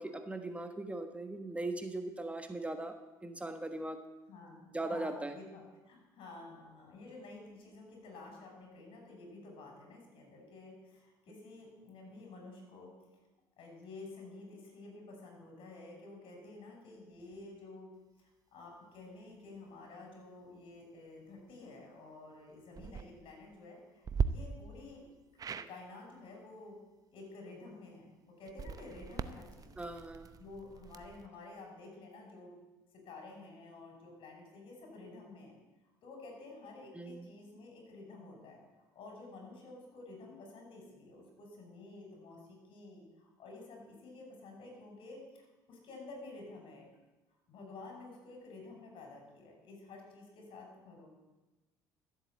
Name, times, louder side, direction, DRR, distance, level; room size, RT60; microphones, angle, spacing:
voice 1, 0.0-2.9 3.2-4.0 4.7-5.4 29.8-30.3 36.9-37.3, right 2 dB, 15° right, 7 dB, 1.3 m, -39 dB
voice 2, 4.3-12.9 13.6-17.9 18.2-25.1 25.5-26.8 27.1-29.9 30.3-32.5 32.9-35.5 36.0-46.9 47.5-51.1, left 3 dB, 60° left, 1 dB, 5.9 m, -51 dB
sound 1, 22.7-23.0 24.0-24.3 25.4-25.7 28.4-31.3, right 6 dB, 40° right, 0.8 m, -38 dB
13.5 x 8.1 x 8.5 m, 1.1 s
supercardioid pair, 70°, 10 cm